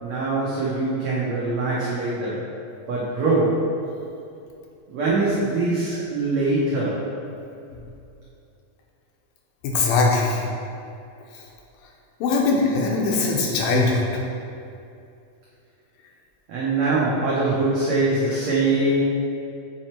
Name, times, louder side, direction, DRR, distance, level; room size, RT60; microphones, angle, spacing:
voice 1, 0.0-2.5 2.9-3.7 4.9-7.0 16.5-19.0, right 2 dB, 80° right, -7 dB, 1.5 m, -23 dB
voice 2, 9.6-10.4 11.3-11.4 12.2-14.2, left 3 dB, 80° left, -1 dB, 2.4 m, -21 dB
7.5 x 3.1 x 4.3 m, 2.6 s
omnidirectional pair, 4.2 m